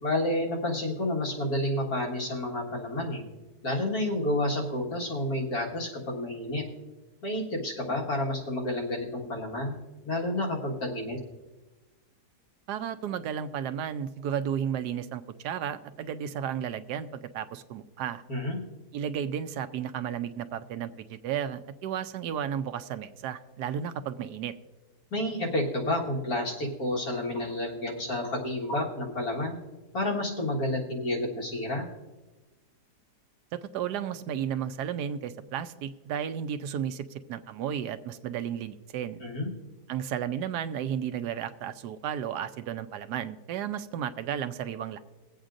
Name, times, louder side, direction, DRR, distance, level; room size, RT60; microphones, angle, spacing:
voice 1, 0.0-3.2 3.6-6.6 7.2-9.8 10.0-11.2 18.3-18.6 25.1-29.6 29.9-31.9 39.2-39.5, left 1 dB, 65° left, -3 dB, 2.2 m, -30 dB
voice 2, 12.7-18.2 18.9-24.5 33.5-39.2 39.9-45.0, right 9 dB, 85° right, 11 dB, 1.2 m, -33 dB
21.5 x 8.0 x 2.5 m, 1.2 s
omnidirectional pair, 1.7 m